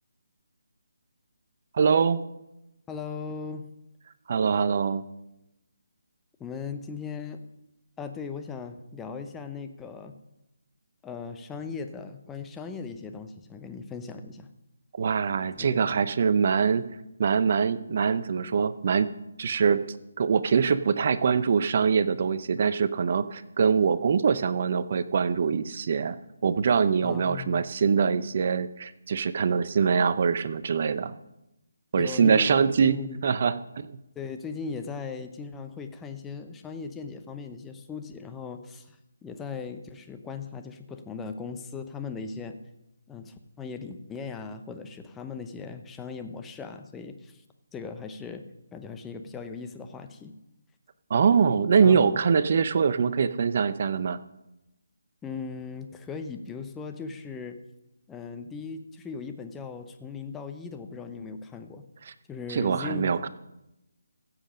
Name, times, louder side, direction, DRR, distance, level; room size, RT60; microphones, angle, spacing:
voice 1, 1.7-2.2 4.3-5.0 14.9-16.9 17.2-19.1 19.4-19.8 20.2-26.2 26.4-31.1 31.9-34.0 51.1-54.2 62.5-63.3, right 6 dB, 45° right, 14 dB, 0.7 m, -23 dB
voice 2, 2.9-3.6 6.4-7.4 8.0-10.1 11.0-14.5 15.6-15.8 27.0-27.6 32.0-33.2 34.1-42.6 43.1-47.4 47.7-48.4 48.7-50.3 51.8-52.1 55.2-57.6 58.1-61.8 62.3-63.3, left 5 dB, 10° left, 6 dB, 0.8 m, -38 dB
15.5 x 7.5 x 5.1 m, 0.90 s
figure-of-eight pair, 155°, 0 cm